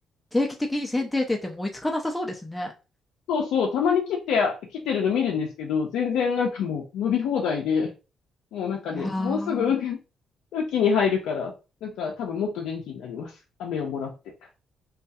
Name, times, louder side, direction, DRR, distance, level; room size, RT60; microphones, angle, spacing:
voice 1, 0.3-2.7 8.9-9.8, left 1 dB, 10° left, 2 dB, 0.4 m, -28 dB
voice 2, 3.3-7.9 8.5-10.0 10.5-11.5 11.8-13.3 13.6-14.1, left 6 dB, 85° left, -1 dB, 0.4 m, -26 dB
2.3 x 2.2 x 2.6 m, 0.31 s
cardioid pair, 90°, 0 cm